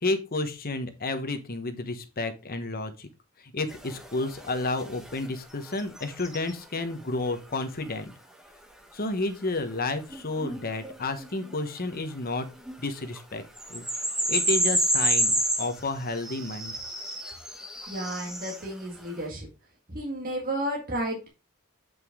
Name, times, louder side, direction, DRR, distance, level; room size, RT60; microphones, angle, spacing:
voice 1, 0.0-3.1 3.4-8.1 8.9-12.5 12.8-13.4 13.7-13.9 14.3-16.7, left 2 dB, 45° left, 8 dB, 1.2 m, -31 dB
sound 1, 3.7-5.3 5.7-6.5 10.1-11.8 12.6-12.7 13.1-13.2 13.6-18.7, right 1 dB, ahead, 1.1 m, -29 dB
voice 2, 17.9-19.5 19.9-21.3, right 1 dB, 40° right, -1 dB, 2.0 m, -32 dB
8.2 x 5.3 x 3.7 m, 0.28 s
head